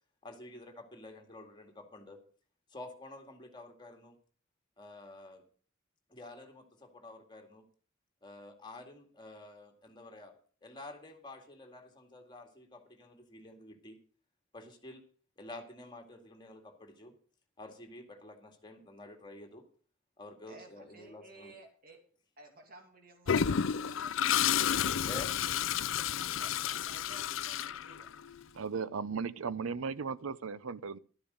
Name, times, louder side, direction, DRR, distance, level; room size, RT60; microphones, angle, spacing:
voice 1, 0.2-2.2 2.7-4.2 4.8-5.4 6.1-7.6 8.2-10.3 10.6-14.0 14.5-15.0 15.4-17.1 17.6-19.6 20.2-21.5 25.1-25.4 26.0-26.1, left 2 dB, 20° left, 2.1 m, -49 dB
voice 2, 20.5-22.0 22.4-24.7 25.2-25.8 26.4-28.1, right 2 dB, 45° right, 2.6 m, -56 dB
Toilet flush, 23.3-28.3, left 8 dB, 70° left, 0.5 m, -31 dB
voice 3, 28.5-31.0, right 5 dB, 90° right, 0.6 m, -36 dB
12.5 x 10.0 x 5.2 m
head